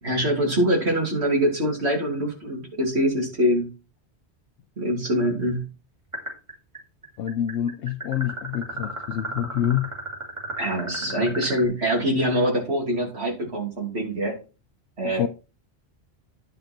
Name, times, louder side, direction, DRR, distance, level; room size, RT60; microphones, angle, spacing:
voice 1, 0.0-3.7 4.8-5.7 10.6-14.3 15.0-15.2, equal, 70° right, 3.2 m, -24 dB
sound 1, 6.1-6.8 7.0-11.6, right 1 dB, 30° right, 2.7 m, -34 dB
voice 2, 7.2-9.9 15.0-15.3, left 10 dB, 80° left, 0.9 m, -27 dB
10.0 x 5.4 x 4.4 m
omnidirectional pair, 1.1 m